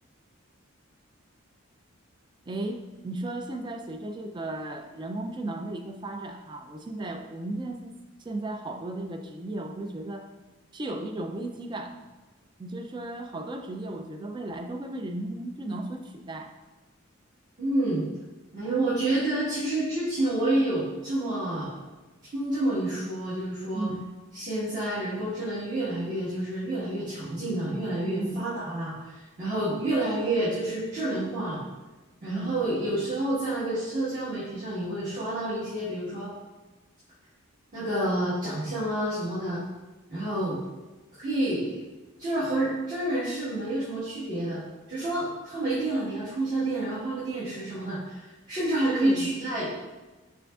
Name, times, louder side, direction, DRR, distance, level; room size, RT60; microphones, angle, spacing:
voice 1, 2.5-7.9 8.2-10.3 10.7-12.1 12.6-16.5 23.7-24.1 28.2-28.5 32.3-32.6 48.9-49.3, right 2 dB, 20° right, 5 dB, 0.3 m, -35 dB
voice 2, 17.6-18.0 18.5-21.7 22.3-23.9 24.3-31.6 32.2-36.3 37.7-39.6 40.1-40.6 41.2-41.8 42.2-44.6 44.9-49.7, right 1 dB, 40° right, -14 dB, 1.4 m, -29 dB
6.0 x 3.3 x 2.4 m, 1.2 s
head